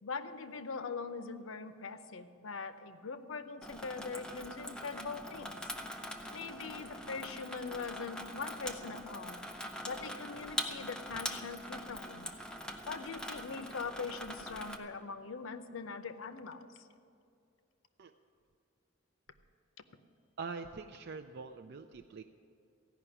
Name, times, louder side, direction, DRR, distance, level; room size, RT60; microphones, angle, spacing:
voice 1, 0.0-5.6 6.3-9.4 9.8-12.3 12.9-16.8, left 4 dB, 90° left, 11 dB, 0.7 m, -42 dB
Water tap faucet / Sink (filling or washing), 3.6-14.8, equal, 5° left, 0.7 m, -43 dB
voice 2, 20.4-22.2, right 4 dB, 55° right, 6 dB, 0.4 m, -44 dB
15.5 x 5.7 x 9.9 m, 2.6 s
head